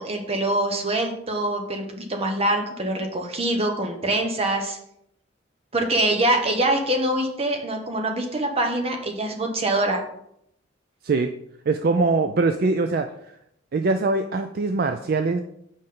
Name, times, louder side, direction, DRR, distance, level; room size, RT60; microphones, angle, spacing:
voice 1, 0.0-4.8 5.7-10.0, right 1 dB, 30° right, 3 dB, 1.0 m, -24 dB
voice 2, 11.7-13.1 13.7-15.4, right 3 dB, 50° right, 7 dB, 0.4 m, -22 dB
7.6 x 5.0 x 3.9 m, 0.75 s
head